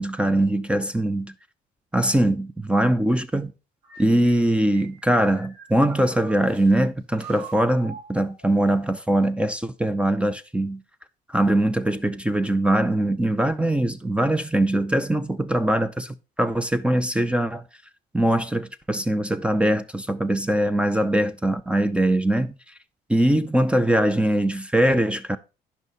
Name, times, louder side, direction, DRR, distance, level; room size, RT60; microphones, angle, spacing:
voice 1, 0.0-1.3 1.9-3.5 4.0-10.8 11.3-17.6 18.1-22.5 23.1-25.4, right 1 dB, 5° right, 0.6 m, -22 dB
sound 1, 3.8-6.7 7.2-9.0, right 4 dB, 75° right, 4.0 m, -44 dB
11.0 x 5.7 x 4.0 m
cardioid pair, 110°, 17 cm